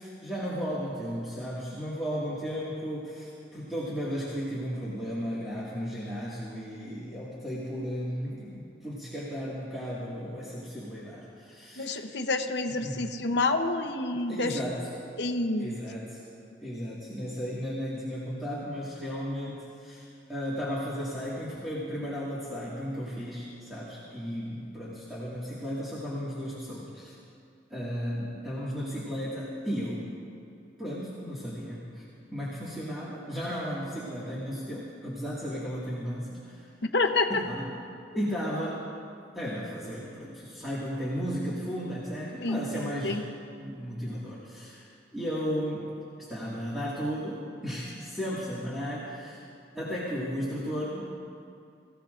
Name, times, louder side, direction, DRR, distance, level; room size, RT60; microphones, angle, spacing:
voice 1, 0.0-12.0 12.8-13.0 14.3-14.8 15.6-16.2 16.6-27.2 27.7-30.1 30.8-32.0 32.3-36.7 37.3-37.6 38.1-38.9 39.3-43.2 43.6-44.9 45.1-45.9 46.3-49.4 49.7-51.0, equal, ahead, -10 dB, 1.9 m, -34 dB
voice 2, 11.8-14.6 15.2-15.7 36.9-37.4 42.4-43.2, left 3 dB, 65° left, 5 dB, 0.8 m, -28 dB
25.0 x 16.0 x 2.6 m, 2.5 s
head